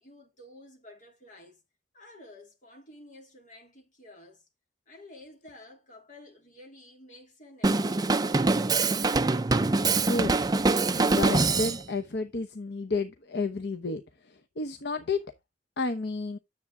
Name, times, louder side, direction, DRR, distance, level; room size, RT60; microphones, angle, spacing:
voice 1, 0.0-1.6 1.9-4.5 4.9-8.2, left 1 dB, 45° left, 3.2 m, -51 dB
Drum kit, 7.6-11.8, right 3 dB, 20° right, 0.4 m, -24 dB
voice 2, 10.0-10.3 10.9-14.0 14.6-15.2 15.8-16.4, left 3 dB, 65° left, 0.8 m, -31 dB
9.7 x 7.1 x 3.7 m
head